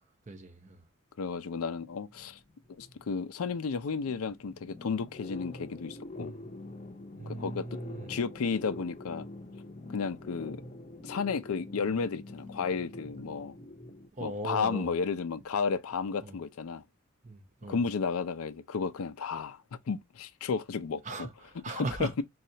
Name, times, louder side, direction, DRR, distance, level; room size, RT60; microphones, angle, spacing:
voice 1, 0.3-0.8 6.2-6.5 7.2-8.1 14.2-14.9 16.2-16.4 17.2-17.8 21.0-22.2, right 2 dB, 35° right, 0.7 m, -38 dB
voice 2, 1.2-2.4 2.8-6.3 7.3-7.7 8.1-9.3 9.9-10.6 11.0-13.5 14.2-16.8 17.7-19.6 19.9-21.3 21.7-22.2, left 5 dB, 90° left, 0.5 m, -33 dB
sound 1, 1.8-14.1, left 2 dB, 30° left, 0.6 m, -46 dB
4.1 x 2.4 x 2.7 m
head